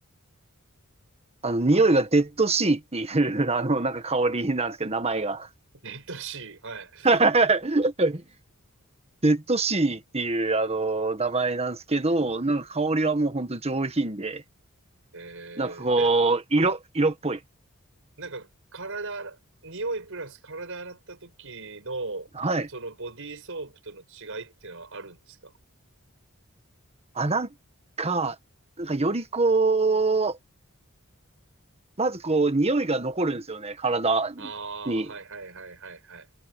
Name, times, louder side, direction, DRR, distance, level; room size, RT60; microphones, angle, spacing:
voice 1, 1.4-5.5 7.0-8.2 9.2-14.4 15.6-17.4 22.4-22.7 27.1-27.5 28.0-28.3 28.8-30.4 32.0-34.5 34.9-35.1, right 3 dB, 30° right, 1.5 m, -24 dB
voice 2, 5.8-7.1 15.1-16.2 18.2-22.3 22.7-25.5 34.4-36.3, right 3 dB, 65° right, 6.6 m, -38 dB
head